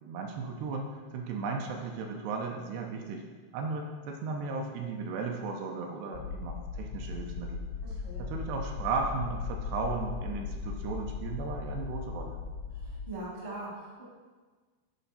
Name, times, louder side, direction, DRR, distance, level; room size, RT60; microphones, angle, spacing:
voice 1, 0.0-3.2 3.5-7.6 8.2-12.4, right 4 dB, 80° right, 2 dB, 2.7 m, -35 dB
sound 1, 6.1-13.1, left 5 dB, 85° left, 2.2 m, -38 dB
voice 2, 7.8-8.3 12.7-14.0, right 2 dB, 45° right, -5 dB, 0.9 m, -42 dB
10.5 x 4.9 x 4.2 m, 1.4 s
omnidirectional pair, 5.0 m